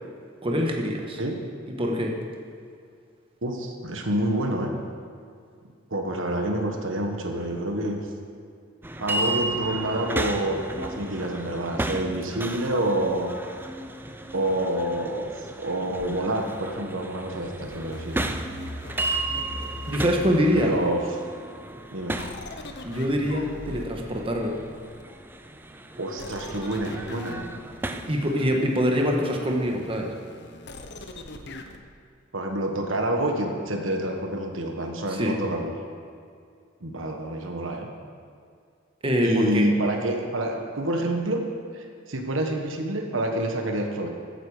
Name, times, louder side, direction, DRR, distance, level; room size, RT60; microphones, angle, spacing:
voice 1, 0.4-1.2 1.8-2.1 19.9-20.7 22.8-24.6 28.1-30.1 35.1-35.3 39.0-39.7, equal, 30° right, 0 dB, 1.4 m, -24 dB
voice 2, 3.4-4.7 5.9-8.0 9.0-13.3 14.3-18.2 20.5-21.2 21.9-22.2 26.0-27.4 32.3-35.7 36.8-37.9 39.2-41.5 41.7-44.1, right 1 dB, 70° right, 3 dB, 1.4 m, -27 dB
sound 1, 8.8-28.5, right 2 dB, 10° right, 0.5 m, -34 dB
sound 2, 17.4-21.1 22.2-25.2 26.2-31.8, left 2 dB, 60° left, 1.0 m, -41 dB
14.5 x 9.9 x 5.0 m, 2.3 s
head